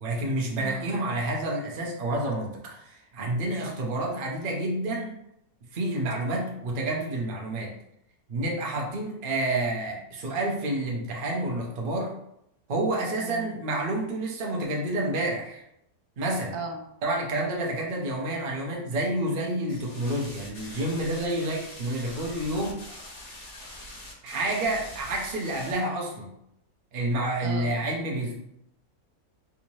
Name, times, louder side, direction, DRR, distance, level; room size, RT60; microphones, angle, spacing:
voice 1, 0.0-5.2 5.7-7.7 8.3-12.1 12.7-15.6 16.2-16.5 17.0-22.8 24.2-26.3 26.9-28.4, right 1 dB, 45° right, -2 dB, 0.7 m, -29 dB
voice 2, 0.6-0.9 3.6-3.8 13.2-13.6 16.5-16.8 27.4-27.8, right 4 dB, 85° right, 3 dB, 1.1 m, -37 dB
sound 1, 19.7-25.7, left 1 dB, 55° left, 1.2 m, -43 dB
3.5 x 2.7 x 3.0 m, 0.78 s
omnidirectional pair, 1.6 m